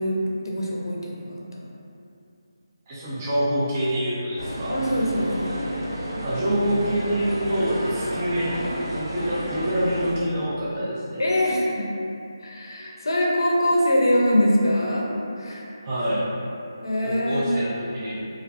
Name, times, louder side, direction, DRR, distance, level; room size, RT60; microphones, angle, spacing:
voice 1, 0.0-1.7 4.7-5.5 11.2-11.9 12.4-15.1 15.4-15.6 16.8-17.5, equal, 65° left, -2 dB, 0.5 m, -23 dB
voice 2, 2.9-4.8 6.2-11.2 15.8-16.3 17.0-18.2, equal, 25° right, -9 dB, 0.4 m, -26 dB
sound 1, 4.4-10.1, equal, 90° right, 0.8 m, -31 dB
2.4 x 2.3 x 2.3 m, 2.7 s
figure-of-eight pair, 165°, 2 cm